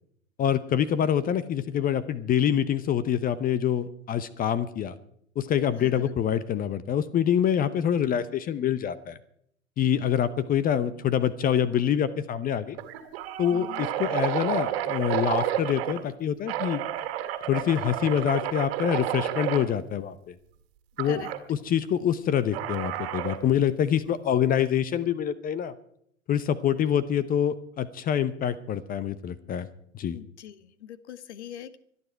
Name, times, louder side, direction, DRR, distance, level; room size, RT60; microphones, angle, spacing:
voice 1, 0.4-4.9 5.4-9.2 9.8-12.8 13.4-16.8 17.4-20.3 21.0-25.7 26.3-29.7 29.9-30.2, left 9 dB, 25° left, 17 dB, 0.8 m, -26 dB
voice 2, 5.7-6.1 13.5-13.9 21.0-21.3 30.1-31.8, left 10 dB, 60° left, 16 dB, 1.3 m, -42 dB
sound 1, 11.5-11.8 12.1-12.2 12.7-16.0 16.5-19.7 21.0-21.4 22.5-23.5, right 11 dB, 55° right, 2.1 m, -31 dB
25.5 x 9.9 x 4.6 m, 0.69 s
figure-of-eight pair, 90°, 38 cm